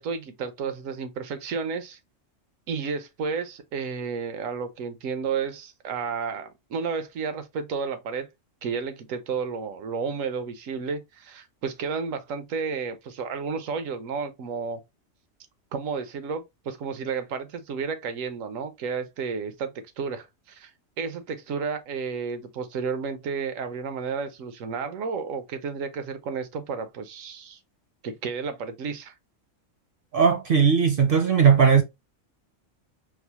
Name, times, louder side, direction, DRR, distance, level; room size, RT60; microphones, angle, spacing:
voice 1, 0.0-2.0 2.7-8.3 8.6-14.8 15.7-20.7 21.0-27.6 28.0-29.1, right 5 dB, 85° right, 1.1 m, -32 dB
voice 2, 30.1-31.8, right 6 dB, 60° right, 0.6 m, -18 dB
4.6 x 2.0 x 2.8 m
omnidirectional pair, 1.3 m